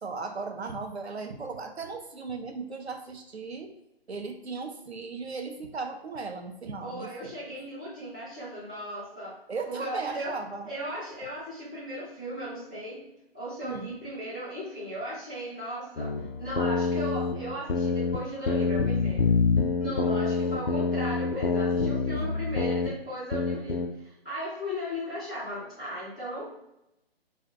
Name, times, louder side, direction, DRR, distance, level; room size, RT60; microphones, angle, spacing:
voice 1, 0.0-3.7 4.1-7.6 9.5-10.7 13.6-14.0 22.1-22.4, right 4 dB, 90° right, 5 dB, 0.6 m, -37 dB
voice 2, 6.8-9.4 9.7-10.4 10.6-13.0 13.3-19.3 19.8-26.5, equal, 5° right, -13 dB, 0.4 m, -37 dB
sound 1, 16.0-18.2 18.5-22.9 23.3-23.9, left 4 dB, 65° left, 0.4 m, -26 dB
2.5 x 2.1 x 3.7 m, 0.88 s
figure-of-eight pair, 145°, 31 cm